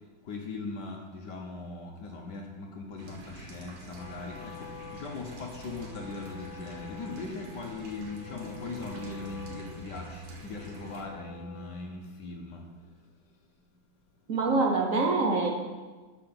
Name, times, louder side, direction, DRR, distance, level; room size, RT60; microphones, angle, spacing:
voice 1, 0.2-13.1, left 3 dB, 60° left, 1 dB, 1.4 m, -40 dB
sound 1, 3.0-11.0, right 2 dB, 85° right, 2.2 m, -47 dB
Wind instrument woodwind instrument, 3.9-11.9, left 5 dB, 75° left, 1.5 m, -48 dB
voice 2, 14.3-15.5, right 3 dB, 45° right, 1 dB, 1.2 m, -25 dB
11.0 x 5.1 x 5.9 m, 1.3 s
omnidirectional pair, 2.4 m